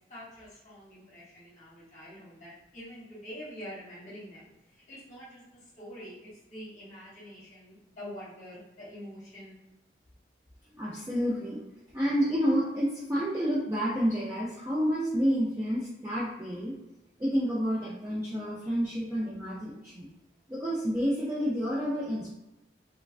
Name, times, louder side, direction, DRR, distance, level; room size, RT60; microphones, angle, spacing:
voice 1, 0.1-9.6, equal, 40° left, -7 dB, 0.9 m, -46 dB
voice 2, 10.8-11.6 11.9-16.7 17.2-20.1 20.5-22.3, equal, 15° right, -8 dB, 0.4 m, -29 dB
3.1 x 2.3 x 2.4 m, 0.96 s
head